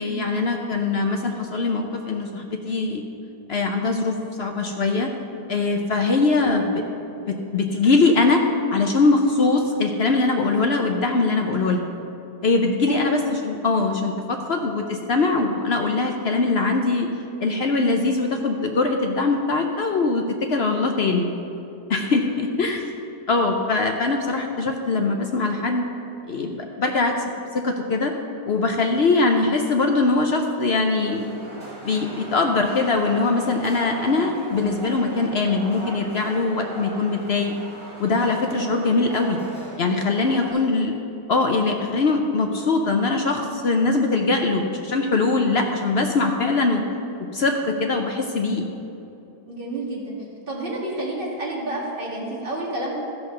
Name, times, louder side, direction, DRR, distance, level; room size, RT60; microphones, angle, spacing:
voice 1, 0.0-3.0 3.5-5.1 5.5-6.8 7.2-8.4 8.7-11.8 12.4-17.1 17.4-21.3 21.9-22.9 23.3-25.9 26.3-27.2 27.5-28.1 28.5-31.2 31.8-37.5 38.0-39.4 39.8-40.9 41.3-46.8 47.3-48.7, left 3 dB, 60° left, 3 dB, 0.7 m, -22 dB
sound 1, 30.9-40.5, right 1 dB, 5° left, 2.9 m, -38 dB
voice 2, 40.3-40.7 49.5-50.1 50.5-52.9, right 2 dB, 30° right, -4 dB, 2.3 m, -30 dB
13.5 x 5.9 x 6.6 m, 2.9 s
omnidirectional pair, 1.8 m